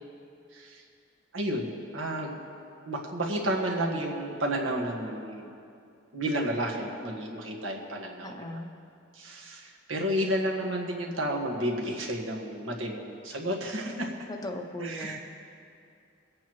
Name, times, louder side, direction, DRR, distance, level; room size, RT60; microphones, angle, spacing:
voice 1, 0.5-0.8 1.3-2.4 2.9-5.5 6.1-8.3 9.1-14.1 14.8-15.2, right 1 dB, 85° right, -1 dB, 1.6 m, -31 dB
voice 2, 8.2-8.7 14.4-15.2, left 1 dB, 20° left, 3 dB, 0.7 m, -37 dB
23.5 x 8.5 x 3.1 m, 2.5 s
head